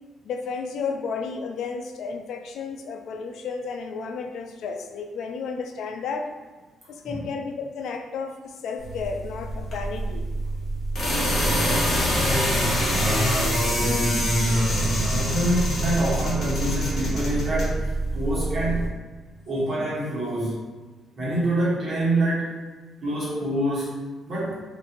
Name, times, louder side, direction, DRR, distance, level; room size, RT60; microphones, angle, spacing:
voice 1, 0.2-6.3 6.9-10.2, left 5 dB, 75° left, 5 dB, 0.3 m, -32 dB
sound 1, 8.8-18.9, equal, 50° left, 0.9 m, -25 dB
voice 2, 12.2-18.9 19.5-20.6 21.2-22.5 23.0-24.6, right 1 dB, 45° right, -8 dB, 1.2 m, -26 dB
2.6 x 2.4 x 2.8 m, 1.3 s
cardioid pair, 90°, 0 cm